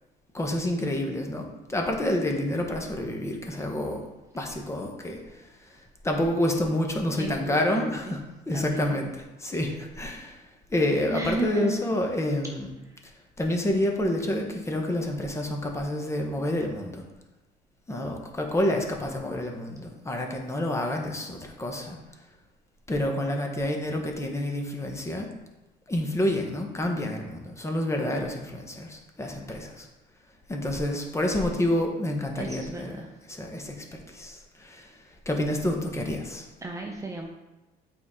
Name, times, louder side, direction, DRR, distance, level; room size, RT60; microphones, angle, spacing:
voice 1, 0.3-4.0 4.3-5.4 6.0-10.4 10.7-12.7 13.4-17.0 17.9-22.0 22.9-25.3 25.9-29.9 30.5-33.0 33.3-34.9 35.3-36.5, left 1 dB, 15° left, 2 dB, 1.2 m, -28 dB
voice 2, 7.2-8.2 8.5-8.9 11.1-11.8 29.5-29.6 32.4-33.1 36.6-37.3, right 2 dB, 20° right, 1 dB, 0.7 m, -34 dB
8.1 x 4.8 x 3.7 m, 1.1 s
cardioid pair, 110°, 17 cm